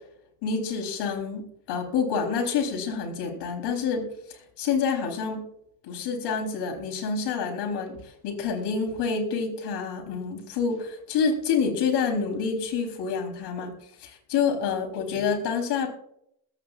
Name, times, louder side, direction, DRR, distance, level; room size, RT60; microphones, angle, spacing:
voice 1, 0.4-4.0 4.3-5.4 5.9-8.0 8.2-13.7 14.0-15.9, left 5 dB, 65° left, 2 dB, 3.9 m, -27 dB
21.5 x 9.0 x 2.5 m, 0.73 s
supercardioid pair, 85°, 44 cm